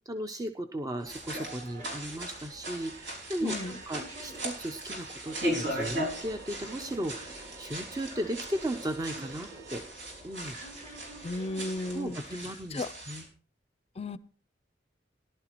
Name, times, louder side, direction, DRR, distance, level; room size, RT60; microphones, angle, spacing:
voice 1, 0.1-9.8 10.2-10.6 11.9-13.3, right 1 dB, 20° right, 0.5 m, -36 dB
sound 1, 1.0-12.2, right 2 dB, 40° right, 2.9 m, -49 dB
sound 2, 1.0-13.3, equal, 80° right, 4.6 m, -38 dB
sound 3, 2.8-9.8, right 5 dB, 60° right, 1.4 m, -53 dB
voice 2, 3.4-3.7 11.2-12.2 12.7-12.9 14.0-14.2, left 3 dB, 35° left, 0.5 m, -34 dB
19.0 x 11.5 x 3.0 m
head